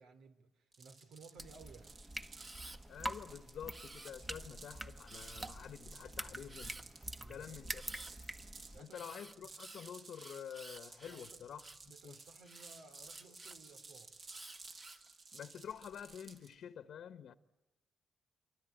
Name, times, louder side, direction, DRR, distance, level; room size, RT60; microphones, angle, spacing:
voice 1, 0.0-1.9 4.3-4.4 7.1-8.0 8.7-9.1 9.4-9.5 11.0-11.4 11.8-14.2, right 4 dB, 90° right, 2.8 m, -59 dB
sound 1, 0.7-16.5, right 3 dB, 50° right, 5.5 m, -55 dB
sound 2, 1.4-8.8, right 1 dB, 15° right, 1.2 m, -46 dB
Camera, 2.3-2.8 3.7-4.4 5.1-5.6 6.5-6.8 7.7-8.1 8.9-11.9 12.4-13.6 14.3-15.1 15.7-16.2, right 2 dB, 30° right, 2.3 m, -53 dB
voice 2, 2.9-6.8 7.3-7.8 8.8-11.6 12.0-12.2 15.3-17.3, left 8 dB, 70° left, 1.2 m, -48 dB
27.5 x 24.5 x 8.9 m
cardioid pair, 95°, 0 cm